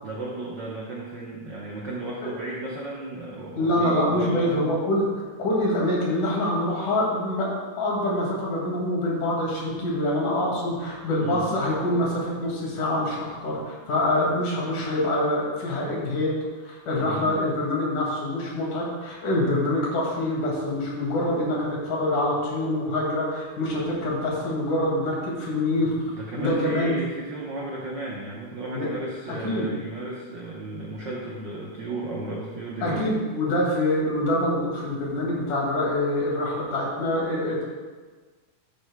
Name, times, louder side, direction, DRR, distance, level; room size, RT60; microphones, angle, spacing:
voice 1, 0.0-4.6 11.2-11.5 17.0-17.3 26.1-33.1, right 2 dB, 85° right, -4 dB, 1.0 m, -34 dB
voice 2, 3.6-5.1 5.4-7.5 7.8-16.4 16.6-25.9 26.4-26.9 28.7-28.9 29.4-29.7 32.8-37.6, left 1 dB, 70° left, -3 dB, 3.7 m, -25 dB
12.5 x 9.6 x 2.3 m, 1.4 s
omnidirectional pair, 3.7 m